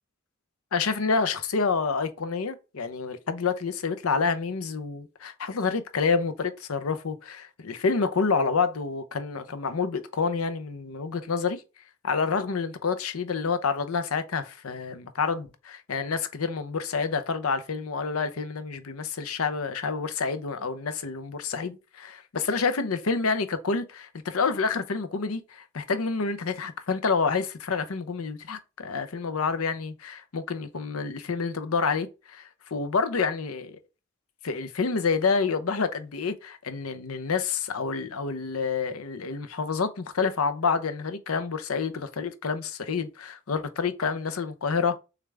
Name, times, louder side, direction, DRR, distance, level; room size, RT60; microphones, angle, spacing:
voice 1, 0.7-11.6 12.0-33.8 34.4-45.0, left 5 dB, 90° left, 0.7 m, -28 dB
6.6 x 2.5 x 3.3 m
head